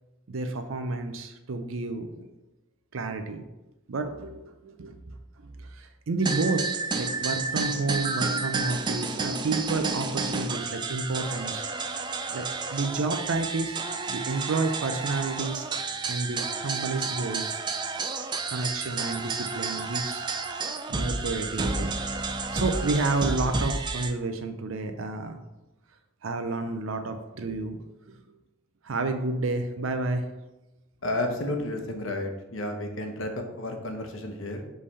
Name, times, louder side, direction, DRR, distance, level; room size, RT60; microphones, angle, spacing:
voice 1, 0.3-2.1 2.9-3.4 3.9-5.0 5.4-6.7 6.9-11.7 12.3-12.5 12.7-13.8 14.1-15.7 16.1-17.6 18.5-20.3 20.9-21.9 22.5-25.4 26.2-27.8 28.1-28.2 28.8-30.2, right 3 dB, 80° right, 7 dB, 0.5 m, -30 dB
sound 1, 6.2-24.1, right 3 dB, 20° right, 0.4 m, -31 dB
voice 2, 31.0-34.7, left 1 dB, 75° left, 4 dB, 1.0 m, -32 dB
5.4 x 3.3 x 5.5 m, 1.0 s
head